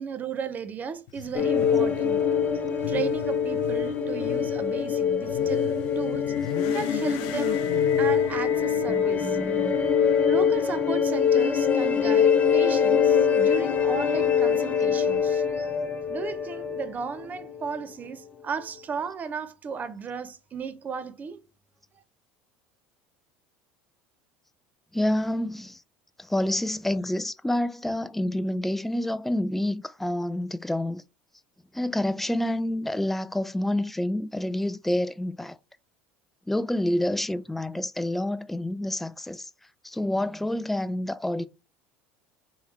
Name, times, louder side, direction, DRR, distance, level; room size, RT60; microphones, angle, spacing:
voice 1, 0.0-2.2 2.9-6.3 6.7-7.7 8.0-9.4 10.3-15.7 16.1-21.4, right 6 dB, 35° right, 0.7 m, -35 dB
Motorcycle / Accelerating revving vroom, 1.1-10.0, left 15 dB, 75° left, 0.4 m, -39 dB
sound 1, 1.3-17.8, left 7 dB, 35° left, 0.8 m, -24 dB
voice 2, 8.9-9.7 24.9-25.8 26.2-31.0 31.7-35.6 36.5-39.5 39.8-41.5, left 1 dB, 5° left, 0.3 m, -28 dB
3.6 x 3.1 x 4.1 m
supercardioid pair, 90°, 5 cm